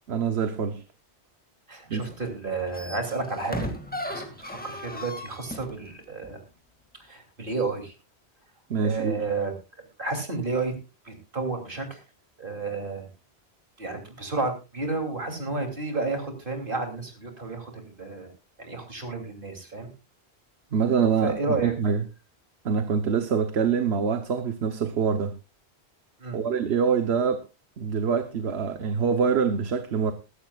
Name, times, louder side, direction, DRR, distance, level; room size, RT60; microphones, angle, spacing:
voice 1, 0.1-0.8 1.9-2.0 8.7-9.2 20.7-22.0 22.6-25.3 26.3-27.4 27.8-30.1, right 6 dB, 75° right, 1.2 m, -25 dB
voice 2, 1.7-3.7 4.1-6.4 7.0-7.9 8.8-9.5 10.0-10.7 11.0-12.0 12.4-13.1 13.8-18.3 18.6-19.9 21.2-21.7 26.2-26.4, right 3 dB, 50° right, 3.1 m, -31 dB
sound 1, 2.0-2.3 2.5-5.8 6.2-6.3, left 1 dB, 10° left, 2.0 m, -36 dB
22.0 x 11.5 x 2.4 m
omnidirectional pair, 1.1 m